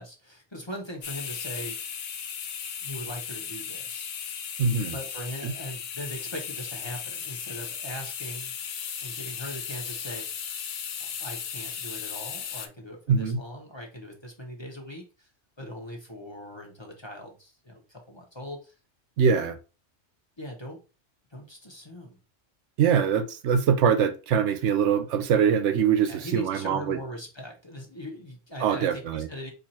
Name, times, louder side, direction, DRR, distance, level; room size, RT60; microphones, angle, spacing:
voice 1, 0.0-1.8 2.8-4.1 4.9-8.5 9.0-10.3 11.2-15.3 15.6-18.7 20.4-20.8 21.3-22.2 26.0-29.5, equal, 25° left, 1.0 m, -40 dB
sound 1, 1.0-12.7, left 7 dB, 80° left, 1.0 m, -36 dB
voice 2, 4.6-5.0 5.4-5.5 13.1-13.4 19.2-19.6 22.8-27.0 28.6-29.3, right 7 dB, 75° right, 0.9 m, -23 dB
4.5 x 2.6 x 4.1 m
omnidirectional pair, 1.3 m